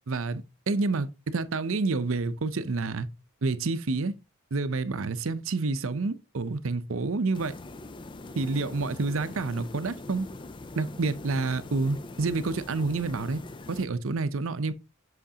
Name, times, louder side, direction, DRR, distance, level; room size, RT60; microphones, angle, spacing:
voice 1, 0.1-3.1 3.4-4.1 4.5-7.5 8.4-10.3 10.8-13.4 13.7-14.7, right 3 dB, 70° right, 0.6 m, -28 dB
sound 1, 7.3-13.9, left 2 dB, 20° left, 0.3 m, -42 dB
7.8 x 5.8 x 2.8 m
head